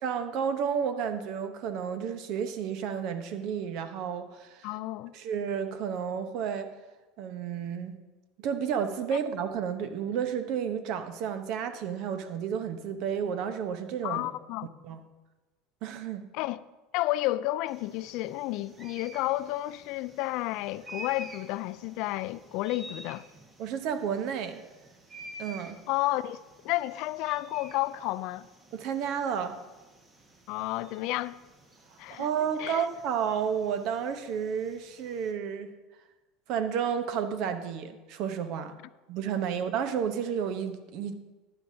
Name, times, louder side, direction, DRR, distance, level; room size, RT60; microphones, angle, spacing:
voice 1, 0.0-4.7 5.1-6.7 7.2-7.9 8.4-14.3 14.8-15.0 15.8-16.2 23.6-24.6 25.4-25.8 28.7-29.6 32.1-35.7 36.5-38.7 39.1-41.1, right 7 dB, 60° right, 0.9 m, -31 dB
voice 2, 4.6-5.2 14.0-14.7 16.3-16.6 16.9-23.2 25.9-26.4 26.6-28.5 30.5-31.4 32.0-32.3 32.6-32.9, left 17 dB, 65° left, 0.3 m, -31 dB
sound 1, 17.7-35.3, right 1 dB, 25° right, 1.4 m, -50 dB
12.0 x 9.9 x 2.7 m
supercardioid pair, 110°, 0 cm